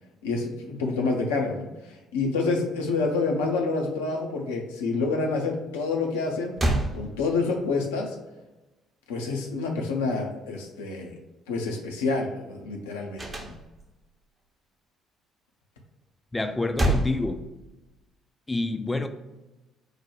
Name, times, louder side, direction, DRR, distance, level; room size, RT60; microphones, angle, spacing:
voice 1, 0.2-1.7 2.1-6.6 6.9-8.2 9.1-11.1 11.5-13.6, left 3 dB, 75° left, 1 dB, 0.6 m, -28 dB
sound 1, 6.1-6.2 6.5-7.7 13.2-14.0 16.4-18.0, right 1 dB, 25° right, 0.8 m, -28 dB
voice 2, 16.3-17.4 18.5-19.1, left 2 dB, 15° left, 7 dB, 0.4 m, -27 dB
4.8 x 2.2 x 4.4 m, 1.1 s
figure-of-eight pair, 50°, 0 cm